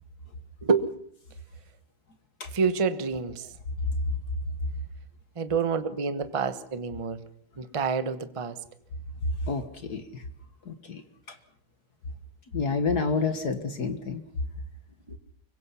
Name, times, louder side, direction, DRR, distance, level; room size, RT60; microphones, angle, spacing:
voice 1, 2.5-3.4 5.4-7.2 7.6-8.5, right 5 dB, 25° right, 10 dB, 0.7 m, -27 dB
voice 2, 10.7-11.0 12.5-14.2, left 4 dB, 50° left, 8 dB, 1.9 m, -28 dB
25.0 x 22.5 x 5.7 m, 0.68 s
omnidirectional pair, 2.2 m